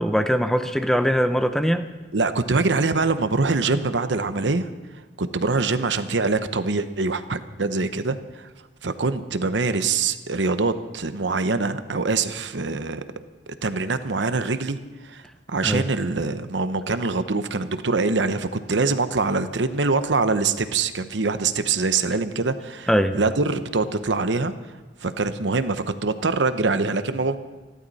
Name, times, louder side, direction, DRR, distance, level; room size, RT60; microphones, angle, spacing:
voice 1, 0.0-1.9 15.6-15.8 22.9-23.2, equal, ahead, 9 dB, 0.7 m, -21 dB
voice 2, 2.1-4.7 5.2-8.5 8.8-13.0 13.5-14.8 15.0-15.2 15.5-22.9 23.1-24.5 25.0-27.4, right 3 dB, 80° right, 10 dB, 0.9 m, -24 dB
28.0 x 12.5 x 4.2 m, 1.3 s
head